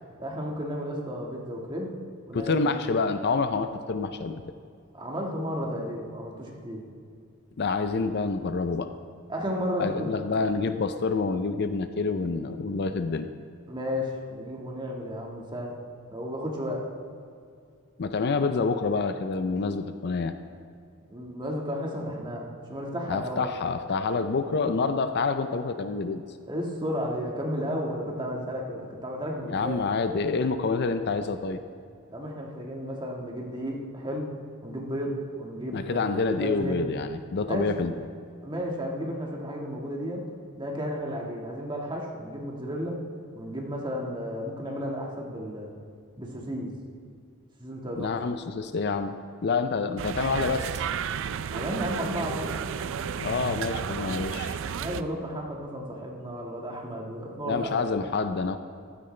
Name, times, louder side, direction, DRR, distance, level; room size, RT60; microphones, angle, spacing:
voice 1, 0.2-1.9 2.3-2.7 4.9-6.9 9.3-10.4 13.7-15.8 16.1-16.9 21.1-23.5 26.5-29.8 32.1-34.3 34.6-36.8 37.5-37.7 38.4-40.3 40.5-43.0 43.3-45.7 46.2-46.7 47.6-48.2 51.5-52.5 54.8-57.8, equal, 20° right, -1 dB, 1.6 m, -33 dB
voice 2, 2.3-4.4 7.6-8.9 9.8-13.3 18.0-20.3 23.1-26.2 29.5-31.6 35.7-37.9 48.0-49.2 49.4-50.8 53.2-54.6 57.5-58.6, left 4 dB, 50° left, 9 dB, 0.5 m, -27 dB
sound 1, 50.0-55.0, right 7 dB, 60° right, 0.4 m, -32 dB
15.0 x 12.5 x 3.3 m, 2.3 s
head